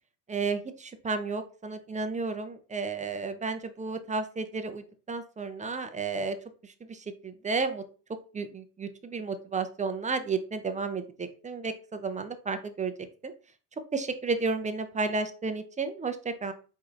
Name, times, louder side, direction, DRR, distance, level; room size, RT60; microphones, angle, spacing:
voice 1, 0.3-6.4 6.6-7.8 8.3-12.9 13.2-13.3 13.9-16.5, right 4 dB, 15° right, 9 dB, 0.5 m, -32 dB
4.5 x 2.7 x 3.8 m, 0.37 s
supercardioid pair, 95°, 46 cm